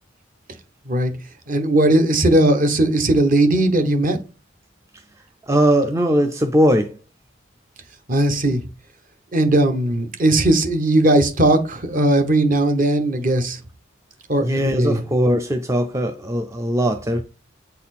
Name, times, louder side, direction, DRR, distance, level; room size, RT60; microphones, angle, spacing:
voice 1, 1.5-4.2 8.1-8.6 9.3-13.6 14.3-15.0, right 1 dB, 45° right, 1.0 m, -18 dB
voice 2, 5.5-7.0 14.4-17.2, equal, 15° right, 0.4 m, -19 dB
7.8 x 4.2 x 4.2 m
head